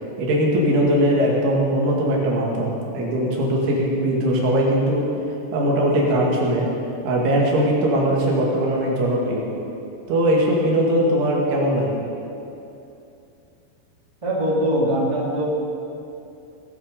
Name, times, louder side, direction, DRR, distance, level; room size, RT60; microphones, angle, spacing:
voice 1, 0.2-5.1 5.5-6.7 7.0-9.5 10.1-12.0, equal, 75° right, -3 dB, 4.7 m, -20 dB
voice 2, 14.2-15.5, equal, 40° right, -5 dB, 0.4 m, -22 dB
19.0 x 9.0 x 6.8 m, 2.8 s
omnidirectional pair, 5.6 m